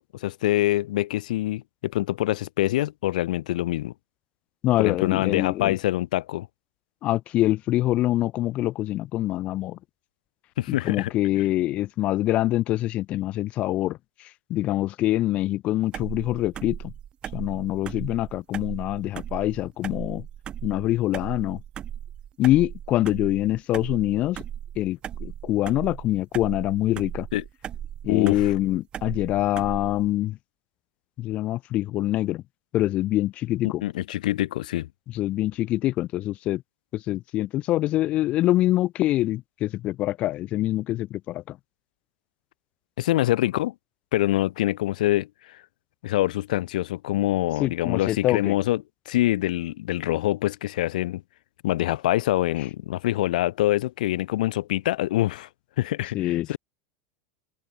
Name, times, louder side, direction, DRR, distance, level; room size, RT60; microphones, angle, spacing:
voice 1, 0.0-3.9 4.8-6.5 10.6-11.1 27.3-27.4 28.1-28.5 33.6-34.9 43.0-43.7 44.1-45.6 46.0-51.2 51.6-55.5 55.8-56.6, left 15 dB, 75° left, 0.8 m, -25 dB
voice 2, 4.6-5.7 7.0-9.8 10.7-14.0 14.5-16.9 17.3-20.3 20.6-21.6 22.4-24.4 24.8-27.3 28.0-30.4 31.2-32.4 32.7-33.8 35.1-36.6 36.9-41.6 47.6-48.6 56.1-56.5, left 15 dB, 30° left, 0.7 m, -25 dB
sound 1, 15.9-30.1, right 10 dB, 20° right, 5.0 m, -37 dB
supercardioid pair, 170°, 4 cm